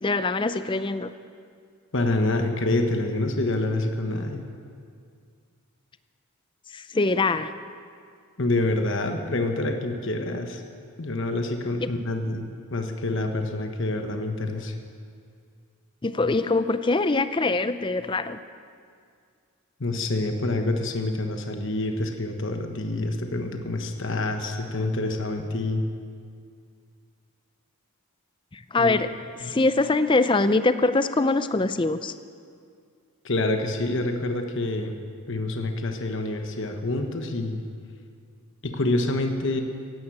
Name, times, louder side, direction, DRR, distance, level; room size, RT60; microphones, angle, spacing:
voice 1, 0.0-1.1 6.7-7.5 11.8-11.9 16.0-18.4 28.5-29.1 29.4-32.1, left 3 dB, 20° left, 12 dB, 0.4 m, -23 dB
voice 2, 1.9-4.5 8.4-10.6 11.0-14.7 19.8-25.8 28.8-28.9 29.4-29.5 33.2-34.9 35.3-37.6 38.6-39.6, left 2 dB, 55° left, 5 dB, 1.2 m, -27 dB
16.0 x 11.0 x 7.4 m, 2.2 s
head